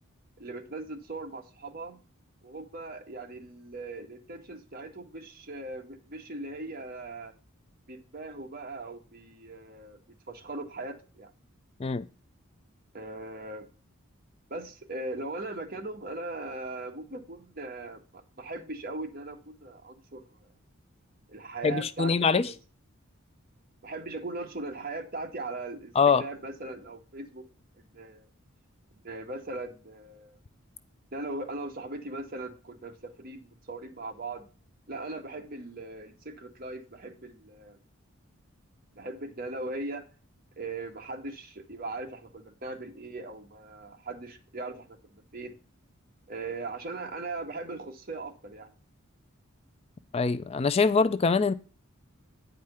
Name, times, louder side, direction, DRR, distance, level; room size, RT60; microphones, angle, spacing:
voice 1, 0.4-2.0 2.4-7.3 7.9-10.0 10.3-11.3 12.9-13.7 14.5-20.3 21.3-22.5 23.8-27.4 27.7-28.3 28.9-30.4 31.1-34.5 34.9-37.8 38.9-40.0 40.6-45.5 46.3-48.7, right 2 dB, 45° right, 1.8 m, -39 dB
voice 2, 21.6-22.5 26.0-26.2 50.1-51.5, left 5 dB, 30° left, 0.4 m, -23 dB
9.5 x 4.9 x 5.7 m
head